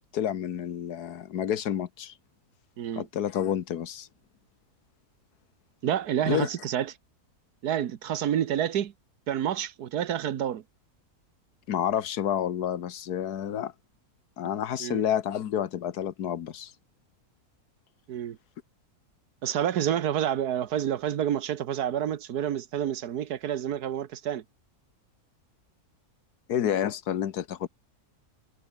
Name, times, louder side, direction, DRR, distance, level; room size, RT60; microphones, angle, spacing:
voice 1, 0.1-2.1 2.9-4.1 6.3-6.5 11.7-13.7 14.4-16.7 26.5-27.7, left 10 dB, 80° left, 1.6 m, -29 dB
voice 2, 5.8-6.9 7.6-8.9 9.3-10.6 14.8-15.0 18.1-18.4 19.4-24.4, right 10 dB, 80° right, 1.5 m, -28 dB
omnidirectional pair, 1.6 m